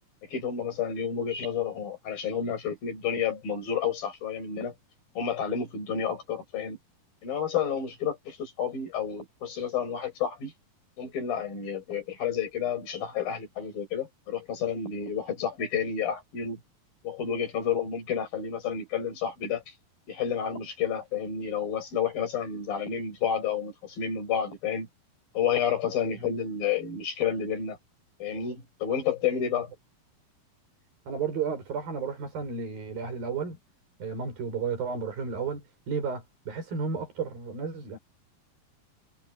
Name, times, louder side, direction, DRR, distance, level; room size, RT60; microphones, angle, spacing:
voice 1, 0.2-4.7 5.2-6.8 7.2-10.5 11.0-16.6 17.0-19.7 20.1-24.9 25.3-27.8 28.2-29.7, left 7 dB, 75° left, 8.2 m, -30 dB
voice 2, 31.1-33.6 34.0-38.0, right 5 dB, 75° right, 7.8 m, -33 dB
omnidirectional pair, 4.1 m